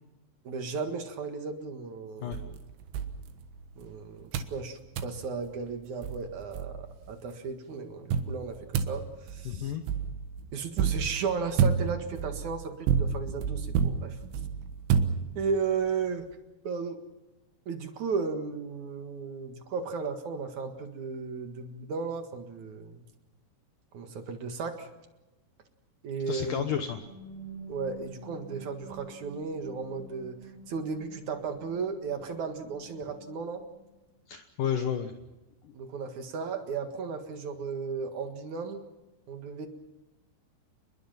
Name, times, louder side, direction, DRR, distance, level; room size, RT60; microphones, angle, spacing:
voice 1, 0.4-2.6 3.8-9.7 10.5-14.2 15.4-16.2 16.6-17.0 17.7-23.0 23.9-24.9 26.0-26.7 27.7-33.6 35.7-38.8 39.3-39.7, right 5 dB, 55° right, 5 dB, 2.5 m, -35 dB
sound 1, 2.3-3.9 4.3-4.6 5.0-5.2 5.7-5.8 6.0-7.1 8.1-15.7, right 7 dB, 90° right, 3.9 m, -30 dB
voice 2, 9.5-9.8 26.3-27.0 34.3-35.1 35.6-35.7, left 9 dB, 80° left, 7 dB, 1.9 m, -31 dB
sound 2, 26.4-34.0, right 3 dB, 10° left, 4.8 m, -49 dB
29.0 x 21.5 x 5.8 m, 1.0 s
omnidirectional pair, 5.4 m